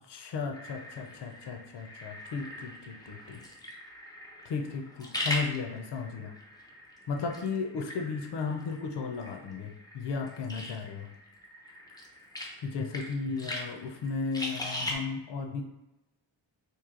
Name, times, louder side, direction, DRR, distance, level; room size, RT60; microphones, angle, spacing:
voice 1, 0.1-3.4 4.4-6.3 7.1-11.1 12.6-15.6, left 4 dB, 60° left, 3 dB, 0.6 m, -35 dB
sound 1, 0.5-15.0, left 1 dB, 10° left, 0.4 m, -41 dB
3.1 x 2.6 x 3.7 m, 0.98 s
wide cardioid pair, 170°, 48 cm